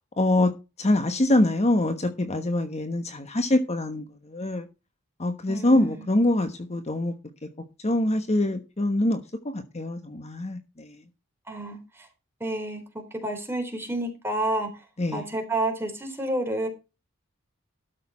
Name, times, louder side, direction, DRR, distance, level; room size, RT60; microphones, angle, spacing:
voice 1, 0.2-0.5 0.8-4.7 5.2-7.1 7.8-9.2 9.5-11.0 15.0-15.3, left 1 dB, 30° left, 1.2 m, -24 dB
voice 2, 5.5-6.1 11.5-12.1 12.4-14.7 15.1-16.7, right 1 dB, 10° right, 3.9 m, -30 dB
12.5 x 6.7 x 4.3 m
head